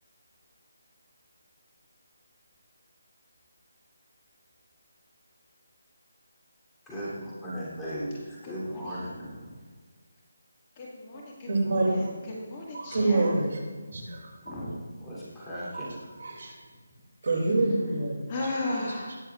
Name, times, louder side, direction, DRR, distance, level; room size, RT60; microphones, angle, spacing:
voice 1, 6.9-9.3 15.0-16.0, equal, 5° left, -10 dB, 3.3 m, -36 dB
voice 2, 8.2-9.6 10.8-13.3 14.4-14.8 16.7-16.8 18.3-19.2, left 2 dB, 30° left, -4 dB, 2.0 m, -36 dB
voice 3, 11.5-12.2 12.7-13.6 13.9-14.3 15.7-15.9 16.2-16.5 17.2-18.2, right 2 dB, 60° right, 0 dB, 2.7 m, -26 dB
19.0 x 6.9 x 2.5 m, 1.5 s
figure-of-eight pair, 160°, 0 cm